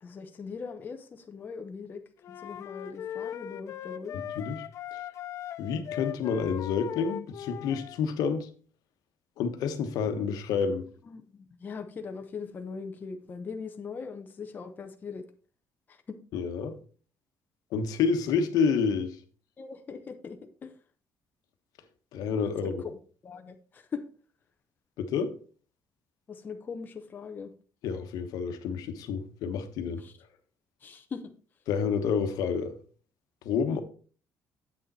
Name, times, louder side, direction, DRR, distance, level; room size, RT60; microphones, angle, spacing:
voice 1, 0.0-2.0 2.3-4.2 11.1-15.2 15.9-16.2 19.6-20.8 22.6-23.0 23.2-24.0 26.3-27.5 30.0-30.1 30.8-31.2, left 5 dB, 30° left, 0.8 m, -40 dB
sound 1, 2.2-8.0, left 10 dB, 50° left, 0.4 m, -39 dB
voice 2, 4.4-4.7 4.9-5.0 5.6-8.5 9.4-10.9 16.3-16.8 17.7-19.2 22.1-22.8 25.0-25.3 27.8-30.0 31.7-32.8 33.4-33.8, left 6 dB, 80° left, 1.1 m, -29 dB
8.4 x 6.3 x 4.2 m
cardioid pair, 150°, 6 cm